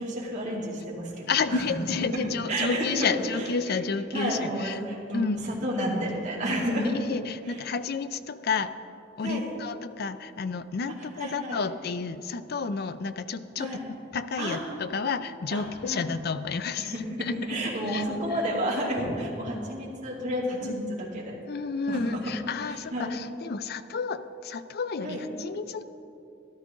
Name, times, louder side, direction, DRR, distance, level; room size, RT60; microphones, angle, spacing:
voice 1, 0.0-1.7 2.5-3.1 3.3-3.8 4.1-6.9 7.5-7.6 9.2-9.5 11.2-11.6 13.6-13.8 14.4-14.6 15.5-16.0 16.8-21.4 21.9-22.2 22.9-23.2 25.0-25.2, equal, 40° right, -6 dB, 2.6 m, -31 dB
voice 2, 1.3-4.8 5.1-5.4 6.7-8.7 9.2-13.8 14.1-16.9 17.2-17.6 17.9-18.0 20.6-20.8 21.5-25.8, left 5 dB, 55° left, 12 dB, 0.5 m, -31 dB
13.0 x 12.5 x 3.8 m, 2.7 s
head